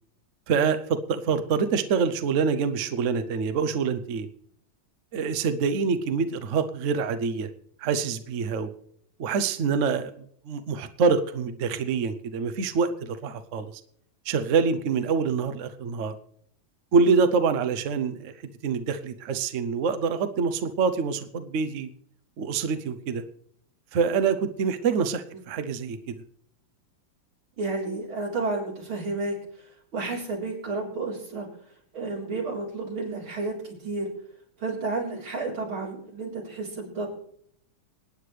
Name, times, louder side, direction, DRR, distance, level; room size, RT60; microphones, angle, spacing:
voice 1, 0.5-4.3 5.1-7.5 7.8-8.7 9.2-10.1 10.5-13.7 14.3-16.1 16.9-18.3 18.6-21.9 22.4-23.2 23.9-26.1, right 5 dB, 55° right, 9 dB, 0.8 m, -25 dB
voice 2, 27.6-29.3 29.9-31.5 31.9-34.1 34.6-37.1, right 3 dB, 85° right, -3 dB, 4.7 m, -31 dB
27.0 x 9.5 x 3.3 m, 0.66 s
omnidirectional pair, 2.2 m